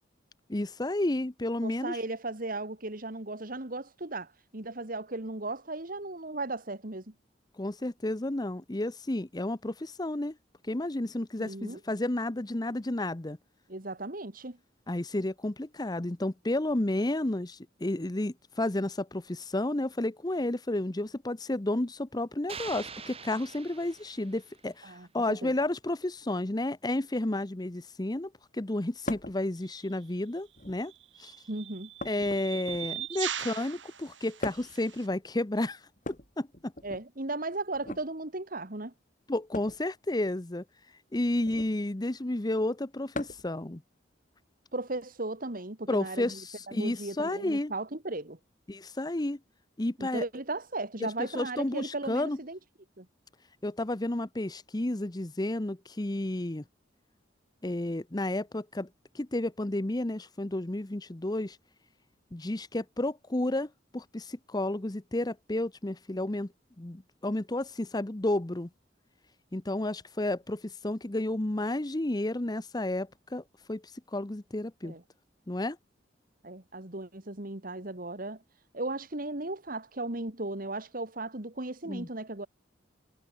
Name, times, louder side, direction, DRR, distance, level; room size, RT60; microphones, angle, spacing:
voice 1, 0.5-2.0 7.6-10.4 10.7-13.4 14.9-30.9 31.2-31.3 32.0-35.8 36.1-36.7 39.3-40.6 41.1-43.8 45.9-47.7 48.7-49.4 49.8-50.2 51.0-52.4 53.6-56.6 57.6-58.9 59.1-61.6 62.3-66.5 66.8-68.7 69.5-73.4 73.7-73.8 74.1-74.9 75.5-75.8 81.9-82.1, left 1 dB, 20° left, 0.8 m, -31 dB
voice 2, 1.6-7.0 11.4-11.8 13.7-14.6 24.8-25.5 31.5-31.9 36.8-38.9 44.7-46.4 46.7-48.4 50.0-52.6 53.0-53.1 74.8-75.0 76.4-78.4 78.7-82.5, right 2 dB, 50° right, 2.3 m, -36 dB
sound 1, 22.5-24.7, right 6 dB, 30° right, 4.1 m, -44 dB
sound 2, 29.1-29.4 30.5-31.0 32.0-33.1 34.4-34.8 36.0-37.0 37.7-38.1 39.5-39.8 41.4-41.8 43.1-43.5 45.0-45.1 46.3-46.4, left 2 dB, 45° left, 5.0 m, -39 dB
sound 3, 29.7-29.8 30.9-35.1, right 10 dB, 85° right, 6.1 m, -40 dB
head